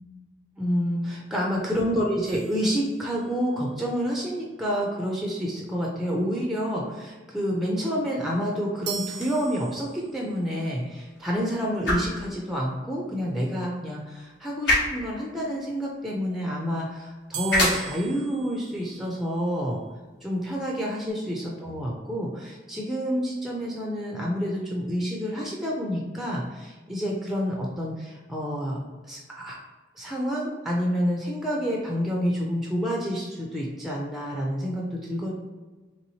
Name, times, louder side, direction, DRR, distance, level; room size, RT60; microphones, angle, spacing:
voice 1, 0.6-19.8 20.2-28.8 29.0-29.6 30.0-35.3, equal, ahead, -2 dB, 0.4 m, -28 dB
sound 1, 2.3-3.6 8.9-10.3 17.3-19.5, right 8 dB, 70° right, 0.5 m, -39 dB
sound 2, 9.0-21.1, left 1 dB, 75° left, 0.9 m, -33 dB
3.3 x 2.9 x 2.7 m, 1.3 s
head